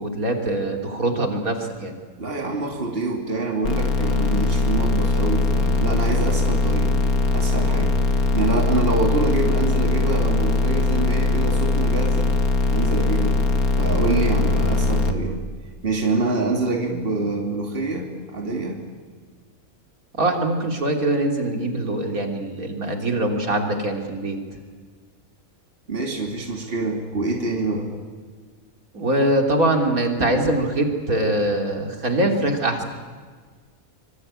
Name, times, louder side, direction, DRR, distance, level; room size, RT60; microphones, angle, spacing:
voice 1, 0.0-2.0 20.2-24.4 28.9-32.8, right 1 dB, 75° right, 3 dB, 3.7 m, -23 dB
voice 2, 2.2-7.0 7.3-8.0 8.3-12.3 12.7-13.4 13.8-15.4 15.8-18.8 25.9-27.9, right 2 dB, 40° right, 1 dB, 3.1 m, -25 dB
sound 1, 3.6-15.1, left 2 dB, 85° left, 2.3 m, -21 dB
25.5 x 25.0 x 9.0 m, 1.5 s
omnidirectional pair, 1.5 m